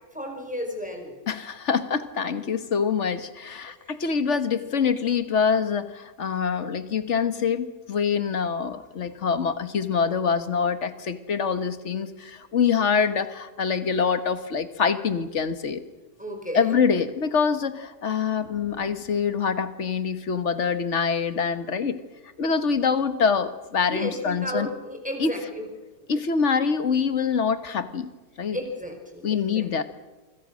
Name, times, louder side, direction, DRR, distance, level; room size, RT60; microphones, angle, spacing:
voice 1, 0.1-1.2 3.8-4.0 16.2-16.8 23.8-25.7 28.5-29.8, equal, 5° right, 3 dB, 4.8 m, -33 dB
voice 2, 1.3-15.8 16.5-22.0 22.4-24.7 25.2-25.3 26.1-28.1 28.4-28.6 29.2-29.8, left 6 dB, 50° left, 11 dB, 1.6 m, -25 dB
28.0 x 25.0 x 6.3 m, 1.2 s
omnidirectional pair, 1.6 m